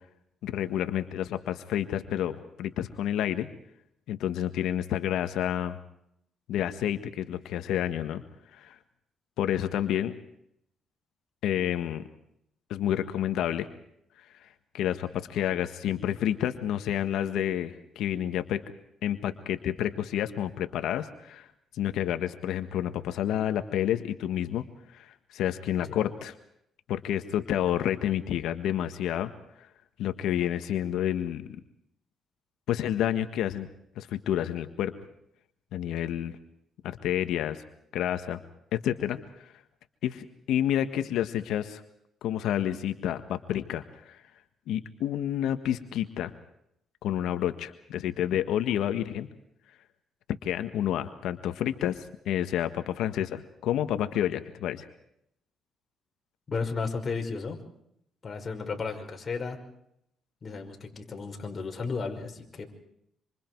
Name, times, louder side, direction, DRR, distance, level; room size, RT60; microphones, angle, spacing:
voice 1, 0.4-3.5 4.1-5.8 6.5-8.2 8.5-8.8 9.4-10.1 11.4-12.0 12.7-13.7 14.7-18.6 19.0-21.5 21.7-24.6 24.9-26.3 26.9-29.3 30.0-31.6 32.7-33.7 34.0-34.9 35.7-36.3 36.8-37.6 37.9-38.4 38.7-39.5 40.0-41.8 42.2-44.2 44.7-46.3 47.0-49.3 50.4-54.8, left 11 dB, 85° left, 9 dB, 1.6 m, -29 dB
voice 2, 56.5-57.6 58.2-59.6 60.4-62.7, left 4 dB, 40° left, 2 dB, 5.5 m, -34 dB
27.0 x 26.5 x 4.7 m, 0.75 s
cardioid pair, 90°, 0 cm